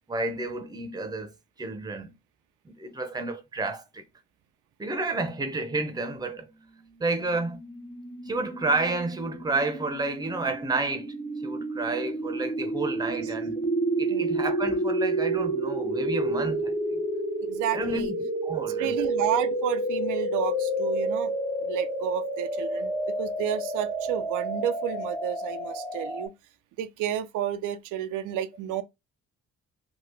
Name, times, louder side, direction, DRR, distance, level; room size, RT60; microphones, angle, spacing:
voice 1, 0.1-1.3 1.6-2.1 2.7-4.0 4.8-6.5 7.0-7.6 8.3-11.1 11.4-13.6 14.0-16.7 17.7-18.1 18.4-19.0, right 3 dB, 15° right, 0.6 m, -30 dB
sound 1, 7.5-26.3, right 1 dB, 10° left, 0.9 m, -30 dB
voice 2, 17.4-18.1 18.8-21.3 21.6-22.9 23.2-26.3 26.8-28.8, right 11 dB, 90° right, 0.5 m, -31 dB
2.9 x 2.3 x 3.3 m
cardioid pair, 90°, 30 cm